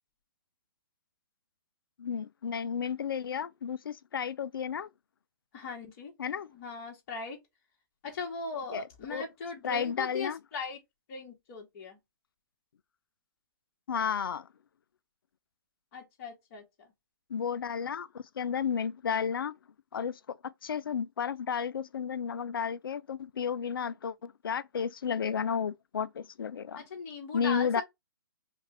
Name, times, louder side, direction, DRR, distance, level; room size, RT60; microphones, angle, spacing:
voice 1, 2.0-4.9 6.2-6.5 8.7-8.8 9.1-9.2 9.6-10.4 13.9-14.5 17.3-19.6 19.9-26.8 27.3-27.8, left 7 dB, 80° left, 0.5 m, -32 dB
voice 2, 5.5-6.1 6.5-7.4 8.0-10.8 11.1-12.0 15.9-16.9 26.7-27.7, left 4 dB, 40° left, 2.0 m, -39 dB
5.3 x 2.5 x 3.4 m
hypercardioid pair, 140°, 12 cm